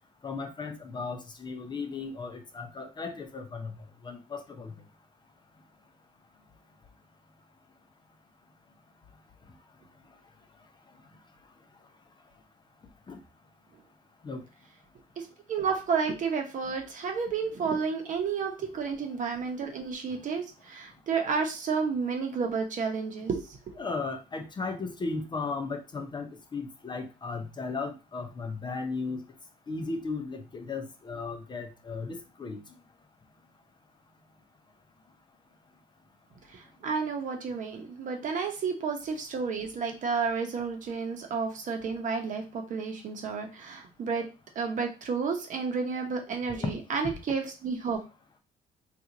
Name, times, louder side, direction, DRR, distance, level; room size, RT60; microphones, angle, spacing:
voice 1, 0.2-3.7 4.0-4.7 13.1-13.2 14.2-14.4 23.8-29.2 29.7-32.6 46.6-46.7, left 4 dB, 25° left, 5 dB, 0.6 m, -35 dB
voice 2, 15.2-23.7 36.5-44.2 44.6-48.0, right 5 dB, 50° right, 4 dB, 0.9 m, -31 dB
2.8 x 2.5 x 3.8 m, 0.31 s
cardioid pair, 110°, 17 cm